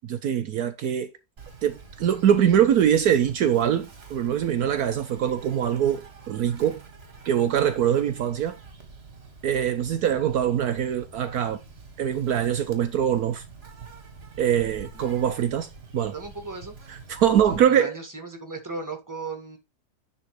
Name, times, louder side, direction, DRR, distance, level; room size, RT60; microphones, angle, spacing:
voice 1, 0.0-1.1 1.6-6.8 7.2-8.6 9.4-11.6 12.0-13.4 14.4-15.7 15.9-16.1 17.2-17.9, right 9 dB, 70° right, 1.2 m, -23 dB
Insect, 1.4-17.6, right 4 dB, 40° right, 1.7 m, -46 dB
voice 2, 16.0-16.7 17.4-19.6, right 3 dB, 10° right, 1.8 m, -36 dB
10.0 x 4.0 x 4.8 m
omnidirectional pair, 1.7 m